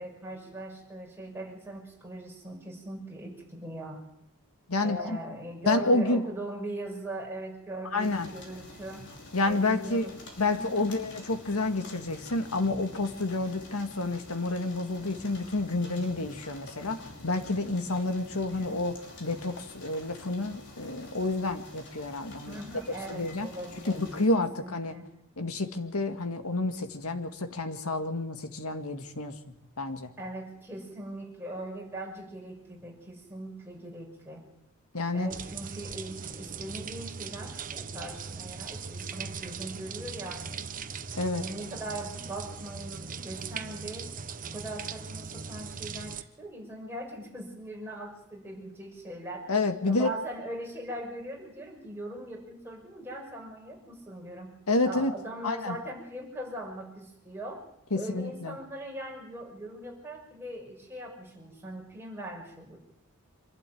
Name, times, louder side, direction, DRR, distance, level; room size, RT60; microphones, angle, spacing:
voice 1, 0.0-4.0 4.8-9.1 9.4-10.9 22.4-24.0 24.3-25.1 30.2-34.4 35.1-40.7 41.4-44.1 44.5-49.5 49.8-54.6 54.8-57.6 58.0-62.8, right 1 dB, 10° right, -1 dB, 6.0 m, -40 dB
voice 2, 4.7-5.2 5.6-6.2 7.9-8.3 9.3-10.1 10.4-22.6 23.1-23.5 23.9-25.0 25.4-29.3 29.8-30.1 34.9-35.3 41.2-41.5 49.5-50.2 54.7-55.1 55.4-55.8 57.9-58.6, left 2 dB, 80° left, 7 dB, 2.0 m, -29 dB
sound 1, 8.0-24.3, left 2 dB, 55° left, 5.3 m, -48 dB
sound 2, 35.3-46.2, right 5 dB, 40° right, 1.0 m, -39 dB
25.5 x 12.0 x 9.3 m, 0.82 s
head